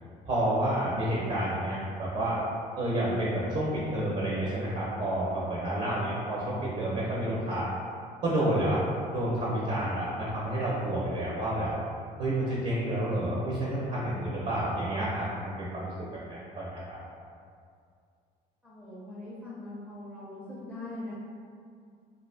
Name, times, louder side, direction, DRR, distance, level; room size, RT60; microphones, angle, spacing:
voice 1, 0.2-2.4 2.8-7.7 8.2-8.8 9.1-11.7 12.2-15.9 16.3-17.0, right 1 dB, 40° right, -6 dB, 0.5 m, -29 dB
voice 2, 18.6-21.1, left 2 dB, 10° left, -8 dB, 0.5 m, -41 dB
2.5 x 2.2 x 2.4 m, 2.3 s
cardioid pair, 110°, 17 cm